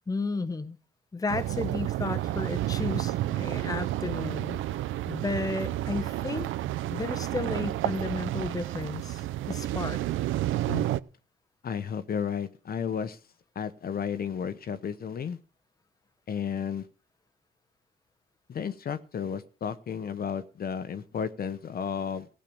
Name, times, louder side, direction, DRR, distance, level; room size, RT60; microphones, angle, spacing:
voice 1, 0.1-0.8 1.1-4.6 5.1-6.5 6.9-10.0, left 3 dB, 20° left, 1.0 m, -33 dB
sound 1, 1.3-11.0, right 14 dB, 85° right, 0.6 m, -30 dB
voice 2, 11.6-13.2 13.5-15.4 16.3-16.9 18.5-22.3, left 7 dB, 50° left, 1.0 m, -33 dB
15.5 x 6.7 x 7.1 m
cardioid pair, 90°, 20 cm